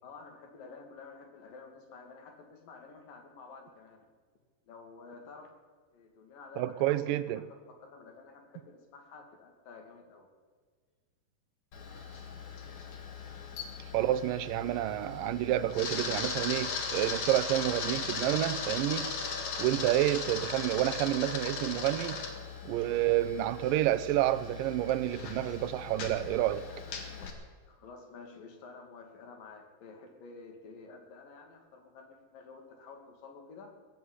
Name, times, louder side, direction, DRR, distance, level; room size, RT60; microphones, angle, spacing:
voice 1, 0.0-4.1 4.7-5.5 5.9-7.1 7.5-10.3 27.7-33.7, left 4 dB, 85° left, 3.9 m, -50 dB
voice 2, 6.6-7.4 13.9-19.1 19.6-22.2 22.7-26.7, right 14 dB, 85° right, 2.4 m, -29 dB
Camera, 11.7-27.3, left 5 dB, 65° left, 3.2 m, -38 dB
18.0 x 8.0 x 9.5 m
omnidirectional pair, 3.8 m